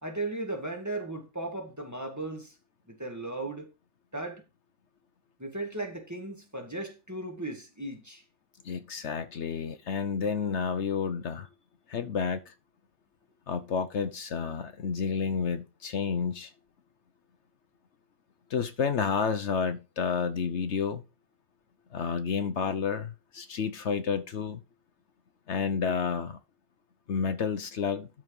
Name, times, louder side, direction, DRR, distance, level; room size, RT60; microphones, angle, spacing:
voice 1, 0.0-2.5 2.9-3.7 4.1-4.4 5.4-8.2, right 2 dB, 15° right, 2.0 m, -36 dB
voice 2, 8.6-11.5 11.9-12.5 13.5-16.5 18.5-21.0 21.9-24.6 25.5-26.4 27.1-28.1, left 6 dB, 65° left, 1.1 m, -30 dB
12.5 x 4.6 x 5.4 m
omnidirectional pair, 1.3 m